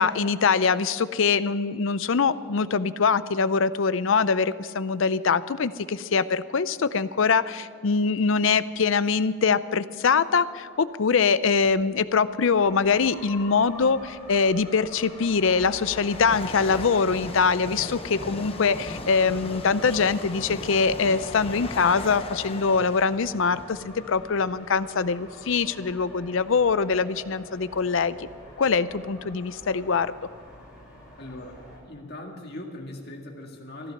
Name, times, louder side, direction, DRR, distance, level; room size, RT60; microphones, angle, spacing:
voice 1, 0.0-28.3 28.6-30.1, left 5 dB, 65° left, 15 dB, 0.5 m, -23 dB
sound 1, 11.5-11.8 12.9-13.0 13.8-25.2 25.8-25.9 26.8-26.9 27.1-28.6, left 2 dB, 25° left, 0.8 m, -39 dB
sound 2, 12.5-31.8, equal, 5° right, 4.2 m, -46 dB
voice 2, 31.2-33.9, left 1 dB, 45° left, 1 dB, 2.0 m, -40 dB
15.5 x 10.5 x 6.6 m, 2.4 s
head